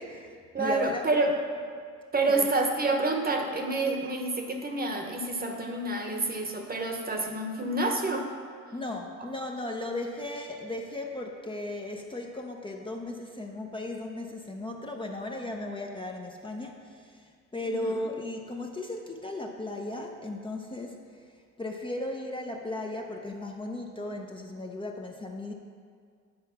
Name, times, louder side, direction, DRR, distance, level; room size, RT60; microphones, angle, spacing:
voice 1, 0.0-1.0 2.4-2.5 8.7-21.3 21.6-25.5, left 2 dB, 15° left, 1 dB, 0.7 m, -36 dB
voice 2, 0.5-1.3 2.1-8.3 17.6-17.9, right 2 dB, 30° right, 3 dB, 1.1 m, -28 dB
9.6 x 4.6 x 5.7 m, 2.1 s
cardioid pair, 90°, 30 cm